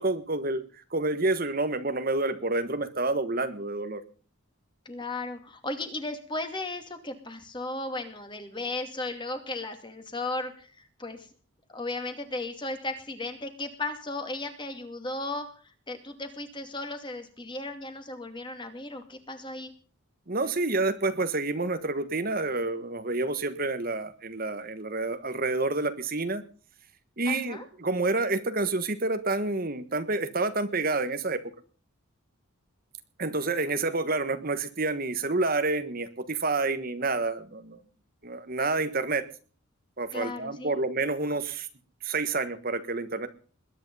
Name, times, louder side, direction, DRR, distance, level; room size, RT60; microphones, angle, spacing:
voice 1, 0.0-4.0 20.3-26.4 27.2-31.4 33.2-37.8 38.2-39.2 40.0-41.7 42.0-43.3, right 3 dB, 40° right, 10 dB, 1.4 m, -28 dB
voice 2, 4.8-10.7 11.0-11.3 11.7-19.7 27.2-27.7 40.1-40.7, left 2 dB, 20° left, 7 dB, 2.6 m, -35 dB
21.0 x 10.0 x 5.5 m, 0.39 s
head